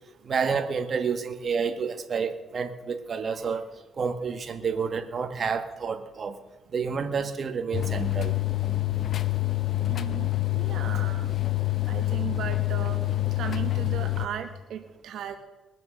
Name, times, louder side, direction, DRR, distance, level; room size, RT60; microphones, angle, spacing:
voice 1, 0.2-3.6 4.0-6.4 6.7-8.3, right 5 dB, 45° right, 7 dB, 1.6 m, -29 dB
sound 1, 7.7-14.3, left 16 dB, 60° left, 0.8 m, -27 dB
voice 2, 9.8-11.3 11.8-15.4, right 9 dB, 75° right, 6 dB, 1.1 m, -37 dB
21.0 x 7.6 x 6.5 m, 1.1 s
cardioid pair, 90°, 0 cm